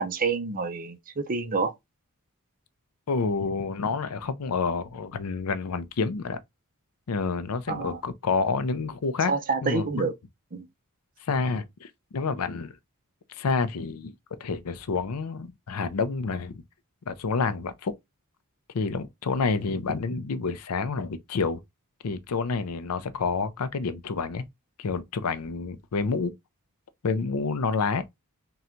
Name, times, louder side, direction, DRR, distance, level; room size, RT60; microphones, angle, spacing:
voice 1, 0.0-1.7 7.7-8.0 9.3-10.1 10.5-10.6, right 4 dB, 40° right, 0.6 m, -28 dB
voice 2, 3.1-6.4 7.1-9.3 9.6-10.1 11.2-12.7 13.3-14.1 14.4-16.6 17.1-17.9 18.7-21.6 22.0-24.4 24.8-26.3 27.0-28.0, left 4 dB, 75° left, 0.5 m, -28 dB
3.9 x 2.3 x 4.3 m
head